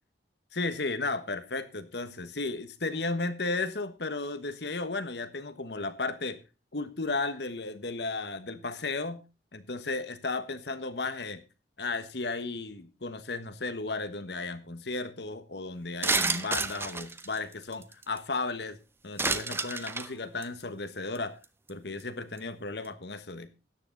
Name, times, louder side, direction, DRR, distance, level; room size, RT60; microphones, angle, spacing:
voice 1, 0.5-6.4 6.7-9.2 9.5-11.4 11.8-18.8 19.0-21.3 21.7-23.5, left 3 dB, 65° left, 12 dB, 1.3 m, -34 dB
sound 1, 16.0-18.2 19.2-20.1 20.4-20.6 21.2-21.3 21.4-21.7 22.0-22.1, right 3 dB, 15° right, 0.7 m, -30 dB
13.0 x 9.9 x 3.9 m, 0.29 s
head